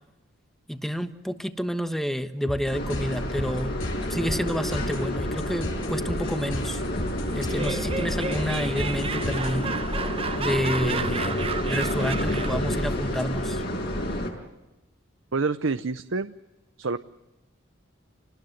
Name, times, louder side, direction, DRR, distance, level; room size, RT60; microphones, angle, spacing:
voice 1, 0.7-3.8 4.1-6.8 7.3-9.7 10.4-11.4 11.7-13.6, equal, ahead, 9 dB, 1.2 m, -29 dB
sound 1, 2.4-9.9, equal, 75° left, 7.2 m, -36 dB
sound 2, 2.7-14.3, left 1 dB, 50° left, 6.0 m, -29 dB
Laughter, 7.3-12.7, right 5 dB, 30° right, 1.0 m, -33 dB
voice 2, 15.3-16.3 16.8-17.0, right 4 dB, 70° right, 10 dB, 0.8 m, -27 dB
28.5 x 19.5 x 8.0 m, 1.0 s
head